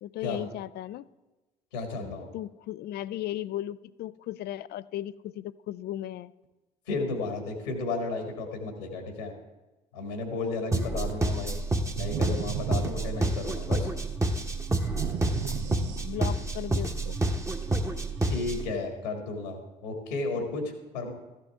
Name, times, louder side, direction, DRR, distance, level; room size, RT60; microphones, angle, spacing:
voice 1, 0.0-1.1 2.0-6.3 15.2-17.2, left 13 dB, 50° left, 17 dB, 0.5 m, -37 dB
voice 2, 1.7-2.3 6.9-9.3 9.9-11.6 11.9-13.9 18.2-20.6 20.9-21.1, left 3 dB, 85° left, 3 dB, 1.9 m, -33 dB
sound 1, 10.7-18.7, right 2 dB, 15° right, 1.2 m, -29 dB
sound 2, 12.0-13.7 14.8-16.5, right 12 dB, 60° right, 0.6 m, -36 dB
14.0 x 11.0 x 3.6 m, 1.1 s
hypercardioid pair, 60°, 21 cm